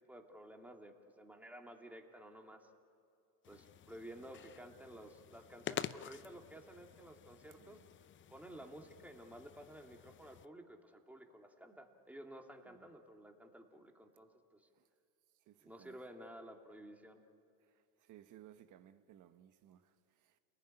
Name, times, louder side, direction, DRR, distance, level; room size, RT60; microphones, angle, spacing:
voice 1, 0.0-2.7 3.5-7.8 8.3-14.7 15.6-17.2, right 1 dB, 5° right, 2.5 m, -53 dB
sound 1, 3.4-10.4, left 10 dB, 25° left, 0.6 m, -49 dB
voice 2, 7.6-7.9 12.7-12.9 14.7-14.9 15.3-16.0 17.6-20.4, right 11 dB, 45° right, 1.3 m, -61 dB
29.0 x 20.0 x 10.0 m
supercardioid pair, 120°, 44 cm